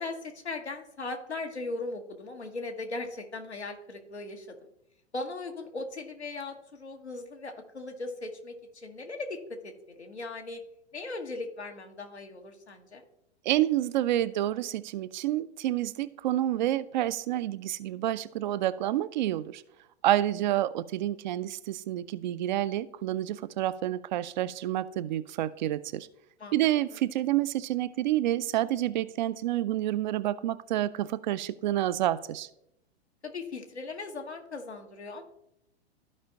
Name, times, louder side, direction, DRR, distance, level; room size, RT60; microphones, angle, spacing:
voice 1, 0.0-4.6 5.1-10.6 10.9-13.0 26.4-26.6 26.9-27.0 33.2-35.2, left 3 dB, 85° left, 3 dB, 1.3 m, -38 dB
voice 2, 13.5-19.6 20.0-26.1 26.5-32.5, right 13 dB, 45° right, 14 dB, 0.4 m, -28 dB
13.5 x 5.0 x 2.8 m, 0.79 s
figure-of-eight pair, 100°, 32 cm